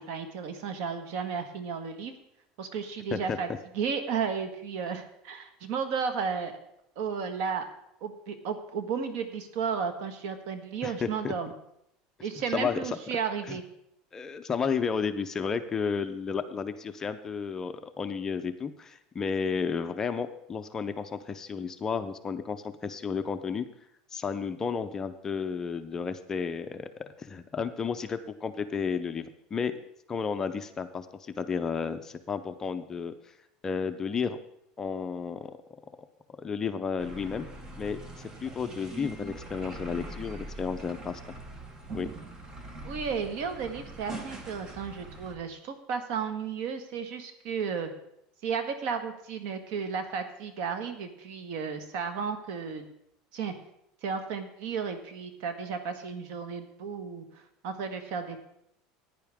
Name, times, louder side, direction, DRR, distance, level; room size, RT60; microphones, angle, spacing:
voice 1, 0.0-2.1 2.6-3.5 3.7-6.6 6.9-7.6 8.0-11.5 12.2-13.6 42.8-47.9 48.4-52.8 53.3-53.5 54.0-58.4, right 6 dB, 65° right, 8 dB, 1.6 m, -33 dB
voice 2, 10.8-11.3 12.5-12.8 13.5-13.6 14.1-23.7 24.1-26.9 27.2-29.7 30.1-33.3 33.6-34.4 34.8-35.5 36.4-37.5 37.8-41.2 41.9-42.1, left 6 dB, 20° left, 9 dB, 0.6 m, -32 dB
sound 1, 37.0-45.4, right 2 dB, 25° right, 1.4 m, -42 dB
15.0 x 9.9 x 3.6 m, 0.77 s
cardioid pair, 150°, 3 cm